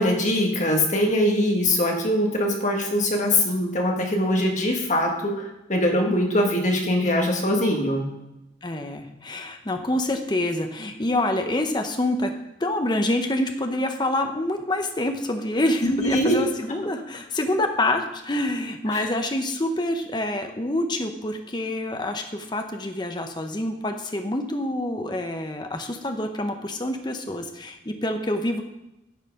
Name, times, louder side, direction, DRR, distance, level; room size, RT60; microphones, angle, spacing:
voice 1, 0.0-8.0 15.8-16.4 18.9-19.1, left 1 dB, 40° left, 1 dB, 1.5 m, -22 dB
voice 2, 8.6-12.3 12.6-28.6, left 1 dB, 20° left, 5 dB, 0.7 m, -26 dB
9.9 x 5.7 x 5.3 m, 0.91 s
head